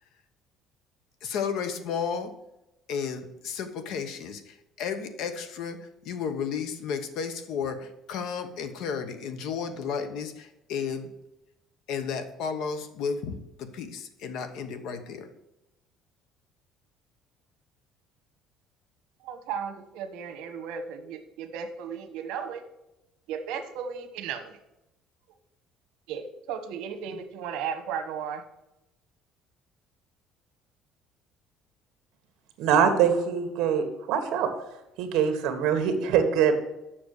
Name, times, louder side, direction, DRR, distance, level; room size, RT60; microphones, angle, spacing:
voice 1, 1.2-2.3 2.9-5.8 6.0-11.1 11.9-15.3, left 6 dB, 60° left, 9 dB, 1.0 m, -33 dB
voice 2, 19.2-22.6 23.3-24.6 26.1-28.5, right 7 dB, 85° right, 8 dB, 1.2 m, -35 dB
voice 3, 32.6-34.5 35.0-36.6, right 7 dB, 65° right, 7 dB, 1.4 m, -23 dB
7.3 x 6.0 x 6.5 m, 0.90 s
cardioid pair, 180°, 0 cm